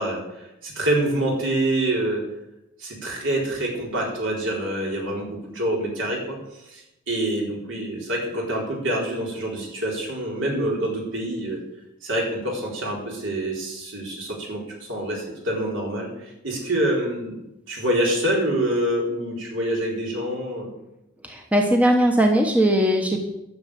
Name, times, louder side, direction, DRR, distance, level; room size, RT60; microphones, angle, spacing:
voice 1, 0.0-2.2 2.8-6.4 6.7-11.6 12.0-17.4 17.7-20.7, right 1 dB, 65° right, -2 dB, 4.2 m, -26 dB
voice 2, 21.2-23.2, equal, 5° right, 2 dB, 1.1 m, -19 dB
10.5 x 7.0 x 8.7 m, 0.89 s
head